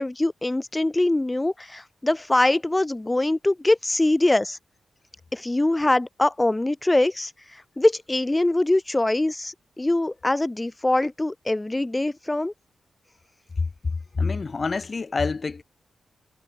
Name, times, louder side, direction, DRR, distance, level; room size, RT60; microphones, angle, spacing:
voice 1, 0.0-4.6 5.3-12.5, left 2 dB, 15° left, 4.5 m, -23 dB
voice 2, 14.1-15.6, left 4 dB, 40° left, 6.6 m, -26 dB
cardioid pair, 80°, 0 cm